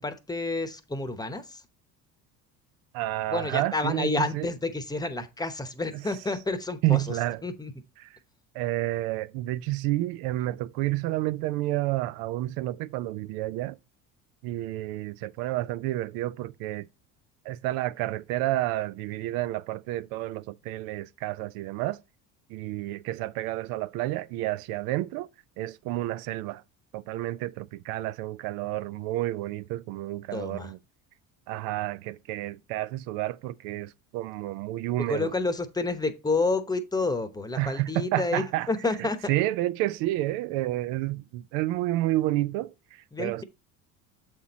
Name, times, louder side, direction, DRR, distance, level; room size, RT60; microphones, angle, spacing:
voice 1, 0.0-1.6 3.3-7.0 7.4-7.7 30.3-30.7 35.0-39.2 43.1-43.4, left 3 dB, 10° left, 0.9 m, -29 dB
voice 2, 2.9-4.5 5.9-6.0 6.8-7.4 8.0-8.2 8.5-13.8 14.4-16.9 17.4-22.0 22.5-25.3 25.6-26.6 26.9-30.8 31.5-35.3 37.6-38.7 39.3-43.4, right 16 dB, 80° right, 0.5 m, -30 dB
7.3 x 4.4 x 4.1 m
supercardioid pair, 100°, 35 cm